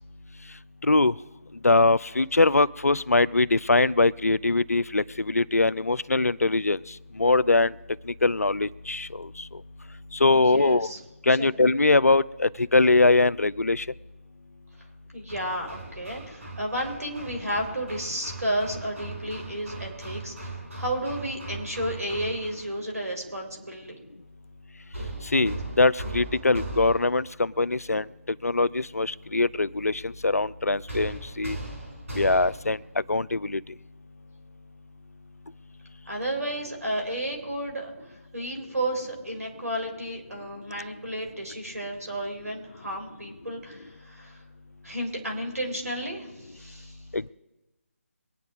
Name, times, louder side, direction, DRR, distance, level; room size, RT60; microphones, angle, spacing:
voice 1, 1.6-6.8 7.2-7.7 8.2-9.3 10.2-10.9 11.3-13.8 25.3-28.0 28.4-31.6 32.2-32.8 33.1-33.6 47.1-47.3, left 3 dB, 85° left, 18 dB, 0.4 m, -22 dB
voice 2, 10.3-11.0 11.4-11.5 15.1-24.0 36.1-37.9 38.3-44.4 44.8-47.0, right 1 dB, 85° right, 2 dB, 3.5 m, -32 dB
Hammer, 15.3-22.7 24.9-27.3 30.9-32.8, right 2 dB, 65° right, 4.0 m, -38 dB
23.5 x 9.3 x 3.5 m, 1.1 s
figure-of-eight pair, 155°, 8 cm